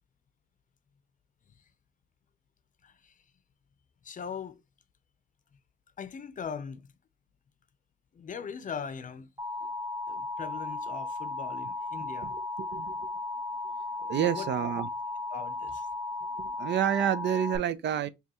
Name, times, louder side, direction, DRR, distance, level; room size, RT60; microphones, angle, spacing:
voice 1, 2.8-3.2 4.0-4.6 6.0-6.9 8.1-9.3 10.1-12.4 14.0-14.5 14.8-14.9 15.3-15.9, left 6 dB, 40° left, 0.6 m, -40 dB
Alarm, 9.4-17.6, left 2 dB, 15° right, 0.9 m, -35 dB
voice 2, 12.6-13.1 14.1-14.9 16.4-18.1, right 10 dB, 65° right, 0.5 m, -29 dB
5.2 x 2.3 x 3.0 m
cardioid pair, 90°, 20 cm